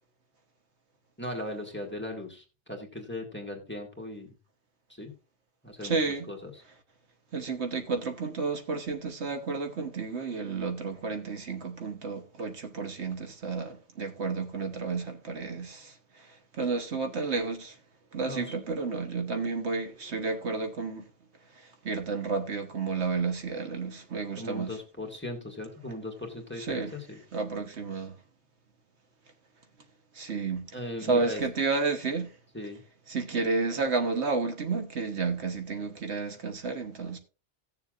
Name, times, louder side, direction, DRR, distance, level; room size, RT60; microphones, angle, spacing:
voice 1, 1.2-4.3 4.9-5.1 5.6-6.0 6.3-6.5 18.2-18.5 24.4-27.2 30.7-31.4 32.5-32.8, left 1 dB, 10° left, 1.8 m, -38 dB
voice 2, 5.8-6.2 7.3-16.3 16.5-17.8 18.1-21.1 21.6-24.8 26.6-26.9 27.3-28.1 30.1-30.7 31.0-32.3 33.1-37.2, right 4 dB, 70° right, 1.4 m, -31 dB
17.5 x 7.0 x 2.5 m
omnidirectional pair, 1.2 m